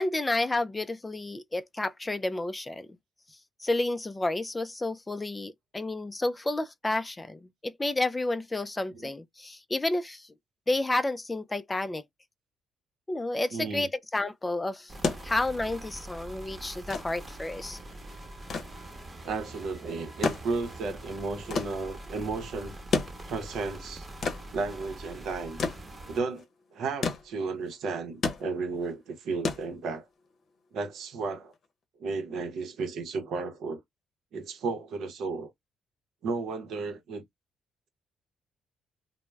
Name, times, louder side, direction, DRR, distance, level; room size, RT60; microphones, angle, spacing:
voice 1, 0.0-2.9 3.6-10.3 10.7-12.0 13.1-14.9 15.2-17.8, left 2 dB, 20° left, 0.3 m, -30 dB
voice 2, 13.5-13.9 19.2-22.8 23.3-24.1 24.5-25.6 26.1-26.4 26.7-30.1 30.7-31.5 32.0-33.8 34.3-35.5 36.2-37.2, right 4 dB, 75° right, 0.7 m, -33 dB
sound 1, 14.8-30.3 31.5-31.6, left 4 dB, 60° left, 0.7 m, -34 dB
sound 2, 14.9-26.2, right 1 dB, 25° right, 0.9 m, -44 dB
2.2 x 2.0 x 3.2 m
supercardioid pair, 70°, 0 cm